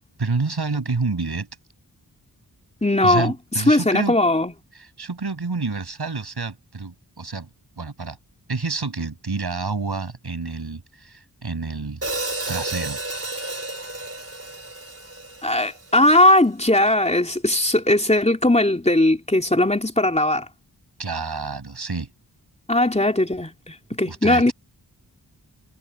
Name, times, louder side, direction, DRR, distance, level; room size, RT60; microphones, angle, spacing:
voice 1, 0.2-1.5 3.0-4.2 4.7-7.5 7.8-8.2 8.5-12.0 12.5-13.0 21.0-22.1 24.1-24.5, right 4 dB, 65° right, 7.5 m, -28 dB
voice 2, 2.8-4.5 15.4-20.4 22.7-24.5, left 1 dB, 15° left, 3.3 m, -19 dB
Hi-hat, 12.0-16.2, right 2 dB, 35° right, 4.8 m, -32 dB
wide cardioid pair, 55°, 42 cm